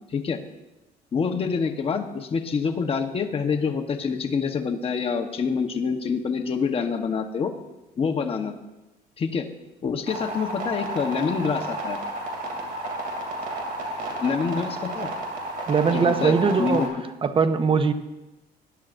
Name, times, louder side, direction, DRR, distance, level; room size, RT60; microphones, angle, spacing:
voice 1, 0.1-0.4 1.1-7.5 8.0-8.6 9.2-9.5 9.8-12.0 14.2-15.1 15.9-16.3 16.6-17.0, left 5 dB, 35° left, 5 dB, 1.1 m, -26 dB
sound 1, 10.1-16.9, right 1 dB, 55° right, 2.8 m, -32 dB
voice 2, 15.7-16.8 17.2-17.9, right 5 dB, 30° right, 10 dB, 0.9 m, -21 dB
19.5 x 10.5 x 2.6 m, 1.0 s
cardioid pair, 110°, 17 cm